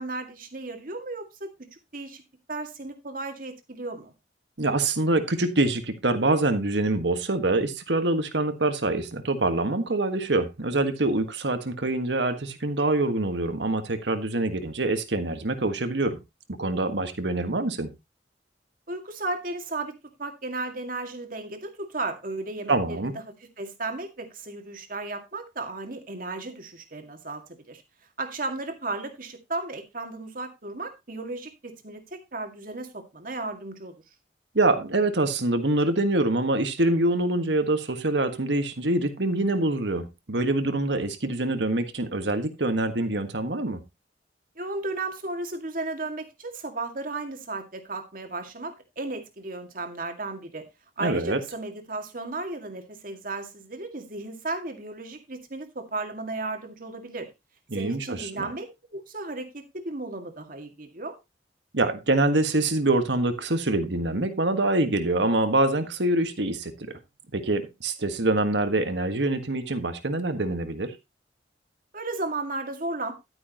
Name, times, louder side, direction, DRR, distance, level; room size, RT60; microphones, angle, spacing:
voice 1, 0.0-1.5 1.9-2.2 2.5-4.1 18.9-27.8 28.2-33.9 44.6-50.6 51.0-57.3 57.7-58.7 58.9-61.1 71.9-73.1, right 2 dB, 50° right, 2.0 m, -34 dB
voice 2, 4.6-16.2 16.5-17.9 22.7-23.1 34.5-43.8 51.0-51.4 57.7-58.5 61.7-66.7 67.3-71.0, right 2 dB, 75° right, 1.6 m, -25 dB
11.5 x 9.5 x 2.9 m
head